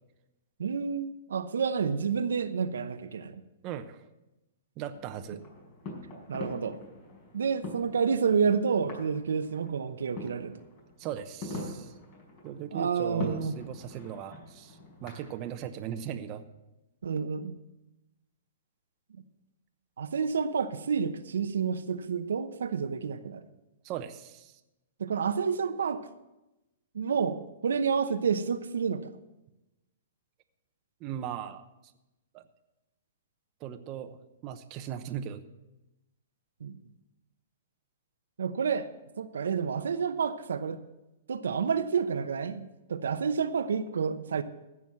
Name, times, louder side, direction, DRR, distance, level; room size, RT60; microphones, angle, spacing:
voice 1, 0.6-3.4 6.3-6.8 7.3-10.5 12.7-13.5 17.0-17.6 20.0-23.4 25.0-26.1 26.9-29.1 36.6-36.7 38.4-38.9 39.2-40.8 41.3-44.4, right 6 dB, 80° right, 9 dB, 0.9 m, -29 dB
voice 2, 3.6-4.0 4.8-5.4 11.0-11.9 12.4-16.4 23.8-24.5 31.0-31.6 32.3-32.4 33.6-34.2 34.4-35.4, right 10 dB, 35° right, 8 dB, 0.9 m, -38 dB
sound 1, 4.9-16.4, left 2 dB, 40° left, 5.2 m, -44 dB
15.5 x 6.2 x 7.4 m, 0.99 s
hypercardioid pair, 135°, 0 cm